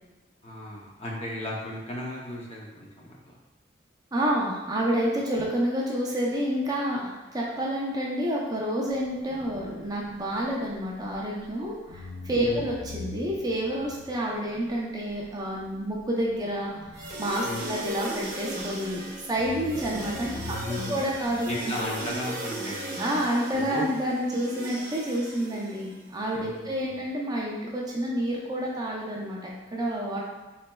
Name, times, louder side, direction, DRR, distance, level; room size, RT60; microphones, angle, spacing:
voice 1, 0.4-3.3 12.4-12.7 17.4-17.7 20.3-21.1 21.5-23.8 26.4-27.0, left 1 dB, 35° left, -3 dB, 0.7 m, -36 dB
voice 2, 4.1-19.0 19.3-20.5 20.9-21.7 23.0-30.2, equal, 20° right, -3 dB, 0.5 m, -29 dB
sound 1, 8.9-11.5 11.9-18.9 19.3-22.1, left 1 dB, 75° left, 1.2 m, -45 dB
sound 2, 16.9-26.1, right 1 dB, 50° right, 0.8 m, -37 dB
4.2 x 3.1 x 2.2 m, 1.2 s
head